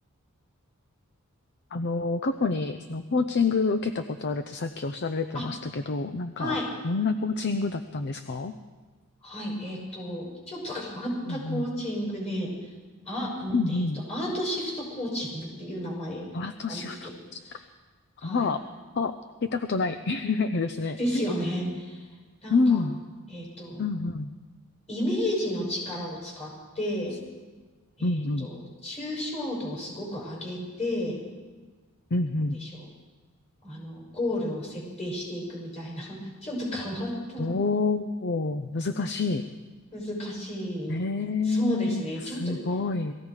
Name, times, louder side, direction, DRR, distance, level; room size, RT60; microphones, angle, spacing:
voice 1, 1.7-6.6 6.8-8.5 11.3-11.7 13.5-14.0 16.3-17.4 18.2-18.6 19.0-19.1 19.4-21.3 22.5-23.0 23.8-24.3 28.0-28.5 32.1-32.6 37.4-39.4 40.9-43.1, left 3 dB, 50° left, 9 dB, 0.6 m, -28 dB
voice 2, 9.2-12.5 13.0-16.3 16.7-17.1 18.2-18.5 21.0-22.0 22.4-22.8 23.3-23.9 24.9-27.2 28.0-31.2 32.6-32.9 33.6-37.5 39.9-41.0 41.4-42.5, left 1 dB, 30° left, -1 dB, 6.0 m, -32 dB
18.5 x 15.0 x 4.8 m, 1.4 s
head